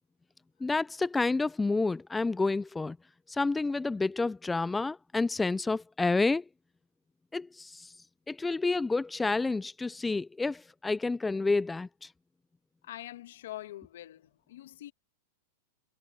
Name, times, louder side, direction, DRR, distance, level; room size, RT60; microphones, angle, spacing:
voice 1, 0.6-3.0 3.3-6.4 7.3-7.9 8.3-12.1, left 3 dB, 10° left, 0.4 m, -29 dB
voice 2, 12.8-14.9, left 14 dB, 75° left, 2.4 m, -44 dB
hypercardioid pair, 125°, 0 cm